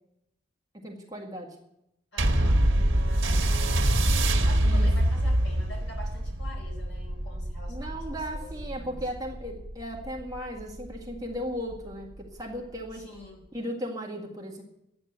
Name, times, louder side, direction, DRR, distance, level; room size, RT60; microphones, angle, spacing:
voice 1, 0.7-1.6 4.6-4.9 7.7-13.1 13.5-14.6, equal, 20° right, 0 dB, 1.8 m, -36 dB
voice 2, 2.1-9.1 12.9-13.5, left 1 dB, 60° left, 0 dB, 5.0 m, -47 dB
sound 1, 2.2-11.0 11.7-11.8, right 1 dB, 90° right, 1.5 m, -25 dB
12.0 x 9.8 x 8.0 m, 0.82 s
head